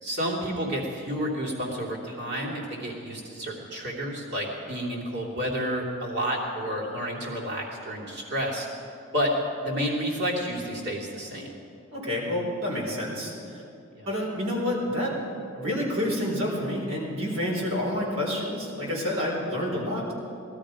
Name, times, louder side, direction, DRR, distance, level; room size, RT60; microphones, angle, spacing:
voice 1, 0.0-8.7 9.1-9.3 9.6-11.6 13.9-14.1, equal, 55° right, -3 dB, 3.0 m, -30 dB
voice 2, 11.9-13.6 14.1-20.1, left 1 dB, 80° right, -3 dB, 4.1 m, -29 dB
19.5 x 13.0 x 5.1 m, 2.6 s
head